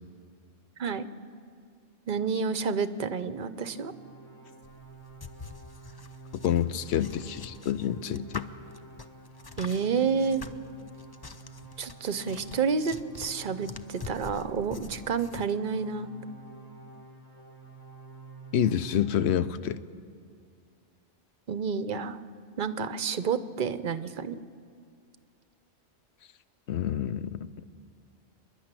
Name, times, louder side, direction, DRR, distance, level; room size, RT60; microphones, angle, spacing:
voice 1, 2.1-3.9 9.6-10.4 11.8-16.1 21.5-22.2 22.6-24.4, right 6 dB, 50° right, 13 dB, 0.8 m, -29 dB
sound 1, 3.2-19.5, right 3 dB, 10° left, 3.2 m, -49 dB
sound 2, 4.6-15.5, left 4 dB, 30° left, 0.4 m, -45 dB
voice 2, 6.4-8.5 18.5-19.8 26.7-27.5, left 9 dB, 70° left, 14 dB, 0.9 m, -28 dB
29.0 x 11.0 x 8.9 m, 2.2 s
omnidirectional pair, 1.2 m